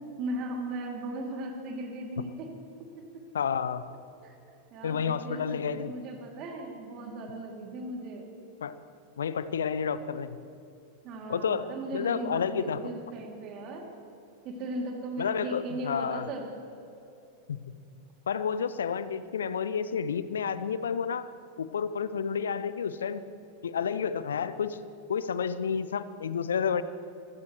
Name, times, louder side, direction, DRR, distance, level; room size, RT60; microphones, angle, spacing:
voice 1, 0.2-2.5 3.0-3.2 4.2-4.4 4.7-8.3 11.0-13.9 14.4-16.5, right 1 dB, 35° right, 2 dB, 2.7 m, -37 dB
voice 2, 3.3-3.8 4.8-5.9 8.6-8.8 9.2-10.4 11.3-11.7 11.9-12.8 15.2-16.3 17.5-17.6 18.3-21.3 21.6-23.2 23.6-24.8 25.1-26.8, left 7 dB, 65° left, 14 dB, 0.6 m, -30 dB
25.0 x 17.0 x 3.1 m, 2.7 s
figure-of-eight pair, 90°, 0 cm